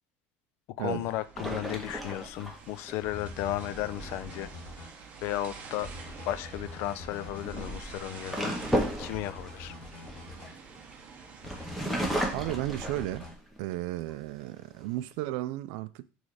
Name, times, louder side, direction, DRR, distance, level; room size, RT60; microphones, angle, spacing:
voice 1, 0.8-4.5 5.2-5.9 6.3-8.5 9.0-9.8, left 13 dB, 55° left, 0.4 m, -34 dB
sound 1, 0.9-12.0, right 5 dB, 30° right, 0.8 m, -48 dB
sound 2, 1.4-3.0 5.9-6.2 7.2-10.9 11.4-13.6 14.1-14.2 14.6-15.1, equal, ahead, 0.8 m, -34 dB
sound 3, 3.0-4.9 5.8-7.7 8.6-10.5 11.4-13.3, left 2 dB, 35° left, 2.7 m, -45 dB
voice 2, 12.3-13.2 13.6-16.0, right 16 dB, 70° right, 0.4 m, -34 dB
6.3 x 3.3 x 4.8 m
cardioid pair, 175°, 5 cm